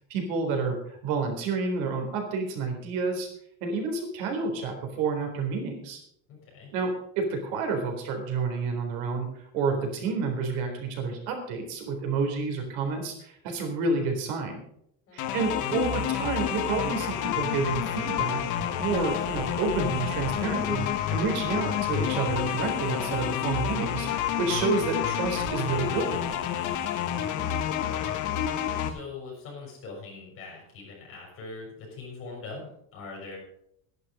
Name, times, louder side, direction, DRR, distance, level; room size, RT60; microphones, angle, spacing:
voice 1, 0.1-3.3 3.6-6.0 6.7-14.6 15.1-18.4 18.8-26.3, right 4 dB, 80° right, 4 dB, 4.0 m, -29 dB
voice 2, 6.3-6.7 15.1-15.3 27.1-28.2 28.8-33.4, left 3 dB, 35° left, -3 dB, 6.5 m, -42 dB
sound 1, 15.2-28.9, left 10 dB, 50° left, 1.3 m, -29 dB
12.5 x 11.0 x 5.1 m, 0.73 s
cardioid pair, 175°, 38 cm